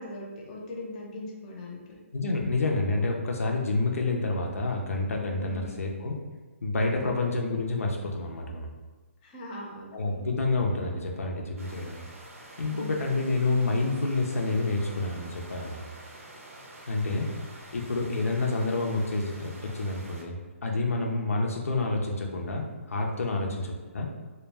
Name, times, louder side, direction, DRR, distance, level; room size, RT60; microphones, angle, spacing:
voice 1, 0.0-2.0 5.3-5.8 6.8-7.2 9.2-10.2 12.6-13.1 23.2-23.5, left 1 dB, 30° left, -2 dB, 0.6 m, -40 dB
voice 2, 2.1-6.1 6.6-8.7 9.9-12.0 12.6-15.8 16.9-17.3 17.7-23.7 23.9-24.1, left 3 dB, 80° left, 0 dB, 0.5 m, -28 dB
sound 1, 11.6-20.2, right 1 dB, 85° right, 0.6 m, -47 dB
2.2 x 2.1 x 3.3 m, 1.3 s
hypercardioid pair, 150°, 8 cm